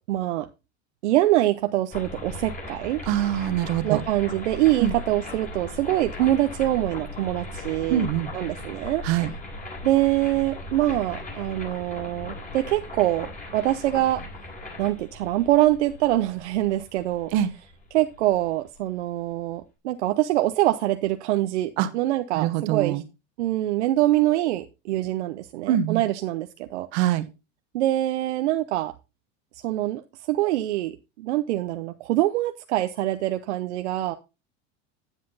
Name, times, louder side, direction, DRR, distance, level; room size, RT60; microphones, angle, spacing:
voice 1, 0.1-0.5 1.0-3.0 3.8-8.0 8.3-9.0 9.8-14.2 14.8-17.3 17.9-23.0 23.4-26.9 27.7-28.9 29.6-34.1, right 15 dB, 85° right, 8 dB, 0.7 m, -24 dB
sound 1, 1.9-18.8, left 2 dB, 25° left, 3.9 m, -38 dB
voice 2, 3.1-4.0 4.8-4.9 7.9-8.3 9.0-9.3 17.3-17.5 21.8-21.9 22.4-23.0 25.7-26.0 26.9-27.2, right 11 dB, 70° right, 11 dB, 1.3 m, -23 dB
9.9 x 7.5 x 3.9 m, 0.28 s
supercardioid pair, 100°, 34 cm